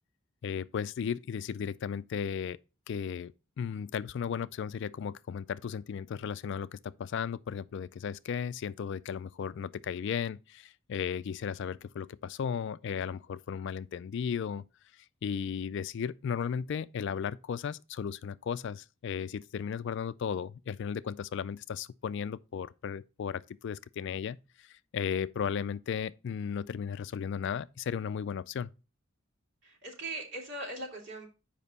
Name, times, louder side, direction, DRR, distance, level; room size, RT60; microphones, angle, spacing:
voice 1, 0.4-2.6 2.9-14.6 15.2-24.7 24.9-28.7, left 7 dB, 60° left, 0.3 m, -35 dB
voice 2, 29.6-31.3, right 2 dB, 60° right, 2.7 m, -40 dB
7.2 x 5.1 x 4.0 m
head